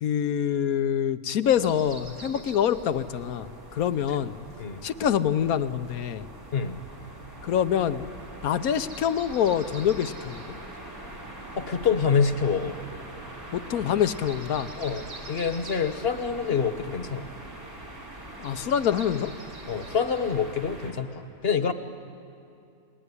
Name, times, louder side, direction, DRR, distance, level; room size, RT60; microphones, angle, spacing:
voice 1, 0.0-4.3 4.8-6.2 7.4-8.0 8.4-10.6 13.5-14.7 18.4-19.3, left 9 dB, 70° left, 12 dB, 1.3 m, -25 dB
sound 1, 1.4-20.9, right 1 dB, 65° right, 4.5 m, -42 dB
voice 2, 11.6-12.8 14.8-17.3 19.7-21.7, left 6 dB, 40° left, 9 dB, 1.4 m, -26 dB
29.5 x 21.0 x 9.7 m, 2.5 s
omnidirectional pair, 1.6 m